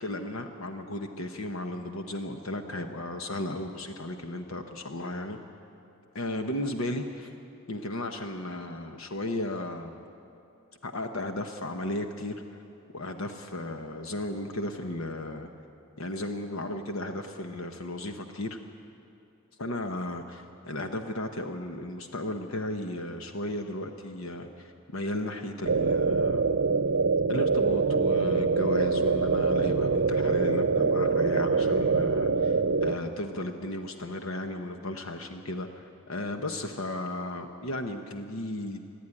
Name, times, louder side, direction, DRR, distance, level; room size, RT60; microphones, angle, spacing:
voice 1, 0.0-5.4 6.1-7.3 7.7-10.0 10.8-12.3 12.9-15.5 16.0-18.6 19.6-26.6 27.3-38.8, left 1 dB, 70° left, 5 dB, 1.0 m, -35 dB
sound 1, 25.6-32.9, right 4 dB, 60° right, 0.7 m, -24 dB
27.5 x 10.5 x 9.8 m, 2.7 s
head